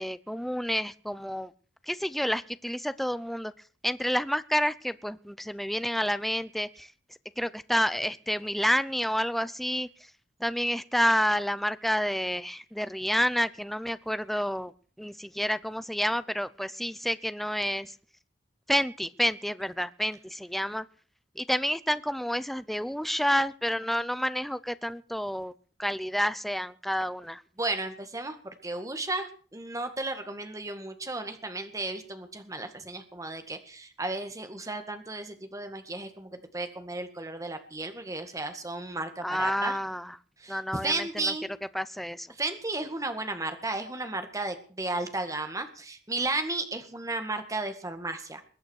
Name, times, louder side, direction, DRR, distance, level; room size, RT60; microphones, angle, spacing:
voice 1, 0.0-1.5 1.9-3.5 3.8-6.9 7.4-9.9 10.4-14.7 15.0-17.9 18.7-20.9 21.4-25.5 25.8-27.4 39.2-40.1 40.5-41.3 41.7-42.3, equal, ahead, 14 dB, 0.6 m, -29 dB
voice 2, 27.6-39.8 40.4-41.6 42.3-48.4, right 2 dB, 20° right, 7 dB, 1.9 m, -34 dB
22.0 x 8.6 x 6.5 m, 0.41 s
head